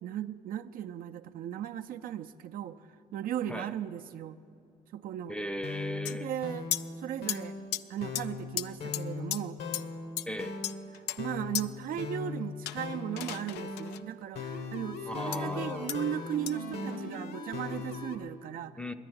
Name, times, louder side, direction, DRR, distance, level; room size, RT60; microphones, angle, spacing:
voice 1, 0.0-2.8 3.1-4.4 4.9-5.4 6.1-7.6 7.9-9.6 10.9-18.8, right 10 dB, 60° right, 8 dB, 0.5 m, -37 dB
voice 2, 5.3-6.3 10.3-10.6 15.1-15.9 18.8-18.9, equal, 5° left, 9 dB, 0.5 m, -37 dB
sound 1, 5.6-18.2, left 4 dB, 70° left, 1.2 m, -39 dB
sound 2, 6.1-6.2 6.7-6.8 7.3-7.4 7.7-7.8 8.2-8.3 8.6-8.7 8.9-9.0 9.3-9.4 9.7-9.8 10.2-10.3 10.6-11.2 11.6-11.7 12.7-14.0 15.3-15.4 15.9-16.0 16.5-16.6, left 13 dB, 90° left, 0.4 m, -34 dB
10.5 x 9.9 x 9.5 m, 2.6 s
cardioid pair, 110°, 17 cm